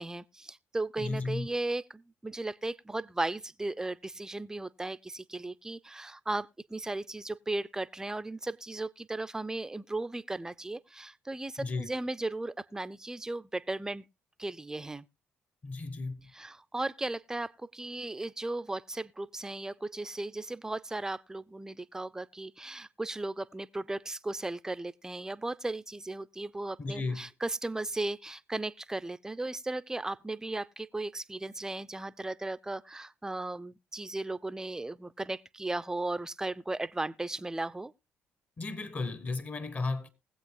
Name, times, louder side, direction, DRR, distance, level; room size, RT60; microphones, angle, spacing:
voice 1, 0.0-14.1 14.4-15.1 16.3-37.9, right 2 dB, 15° right, 0.5 m, -36 dB
voice 2, 1.0-1.5 11.6-11.9 15.6-16.3 26.8-27.3 38.6-40.1, left 3 dB, 40° left, 1.3 m, -34 dB
20.5 x 7.9 x 2.2 m
supercardioid pair, 60°, 4 cm